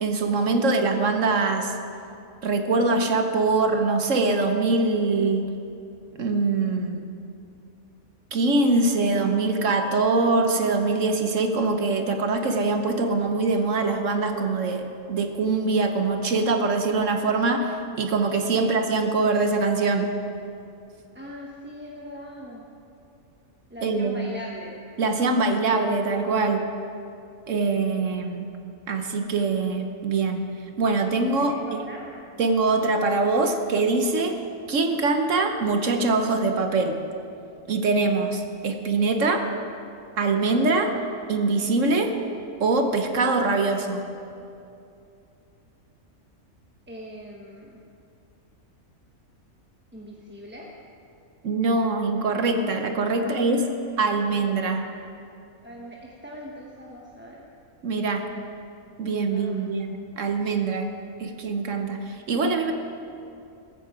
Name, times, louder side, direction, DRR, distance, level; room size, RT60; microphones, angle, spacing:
voice 1, 0.0-1.7 2.4-5.5 6.2-7.1 8.3-20.1 23.8-24.4 25.0-26.7 27.5-28.5 28.9-30.5 30.8-31.8 32.4-34.4 34.7-37.0 37.7-39.5 40.2-41.0 41.3-42.2 42.6-44.0 51.4-53.6 54.0-54.9 57.8-58.3 59.0-60.9 61.2-62.7, right 3 dB, 65° right, 6 dB, 1.2 m, -23 dB
voice 2, 21.1-22.6 23.7-24.7 31.4-32.0 46.9-47.8 49.9-50.7 53.2-54.0 55.6-57.4 59.3-59.9, equal, 10° right, -3 dB, 1.0 m, -40 dB
15.5 x 14.0 x 4.9 m, 2.6 s
omnidirectional pair, 1.5 m